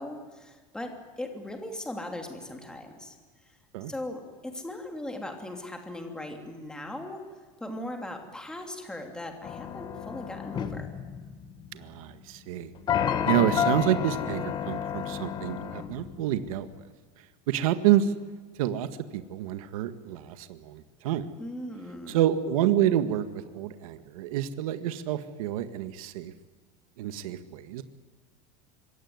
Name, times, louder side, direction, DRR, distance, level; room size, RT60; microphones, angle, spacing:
voice 1, 0.0-3.2 3.4-3.6 3.9-7.2 7.6-10.9 21.4-22.2, left 1 dB, 5° left, 3 dB, 3.1 m, -39 dB
sound 1, 9.4-11.8 12.9-16.5, left 8 dB, 25° left, 1.4 m, -30 dB
voice 2, 11.7-12.7 13.3-16.7 17.5-18.1 18.6-18.9 19.1-21.3 22.1-23.3 23.5-26.3 27.0-27.8, right 11 dB, 85° right, 10 dB, 1.8 m, -28 dB
26.0 x 24.0 x 9.6 m, 1.5 s
supercardioid pair, 170°, 18 cm